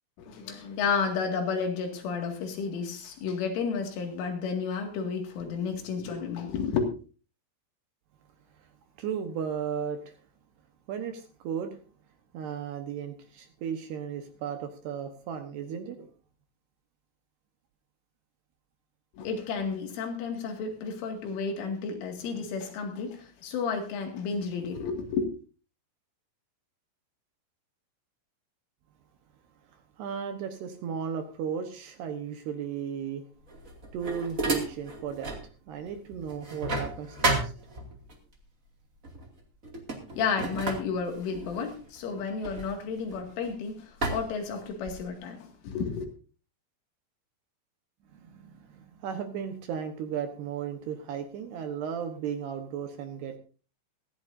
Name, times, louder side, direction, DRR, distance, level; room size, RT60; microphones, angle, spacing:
voice 1, 0.2-6.8 19.2-25.3 40.1-45.4 45.6-46.1, left 5 dB, 75° left, 3 dB, 4.6 m, -32 dB
voice 2, 9.0-10.2 10.9-11.8 12.3-16.1 29.7-33.3 33.9-35.4 35.7-37.5 48.1-53.4, right 7 dB, 70° right, 6 dB, 2.8 m, -35 dB
sound 1, 33.5-35.5 35.9-38.2 39.0-39.3 39.6-43.5 44.0-45.1, right 2 dB, 45° right, 1.1 m, -33 dB
18.0 x 15.0 x 2.7 m, 0.37 s
omnidirectional pair, 5.7 m